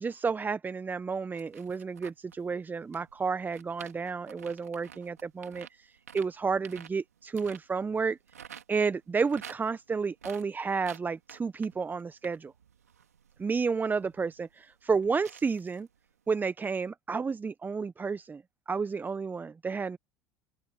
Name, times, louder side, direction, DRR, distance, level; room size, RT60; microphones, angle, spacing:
voice 1, 0.0-8.2 8.7-12.5 13.4-15.9 16.3-20.0, right 5 dB, 20° right, 1.1 m, -31 dB
sound 1, 1.3-8.6 8.9-16.0 16.3-16.4, right 8 dB, 80° right, 3.8 m, -51 dB
open air
figure-of-eight pair, 65°, 8 cm